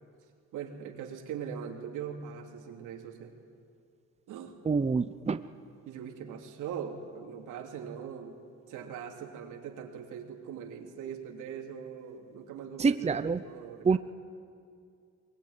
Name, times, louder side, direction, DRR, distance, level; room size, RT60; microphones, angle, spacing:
voice 1, 0.5-3.3 4.3-4.6 5.9-8.4 8.7-14.0, right 7 dB, 90° right, 2 dB, 3.0 m, -41 dB
voice 2, 4.7-5.4 12.8-13.4 13.8-14.0, right 5 dB, 20° right, 11 dB, 0.7 m, -26 dB
22.0 x 21.0 x 9.7 m, 2.3 s
cardioid pair, 90°, 30 cm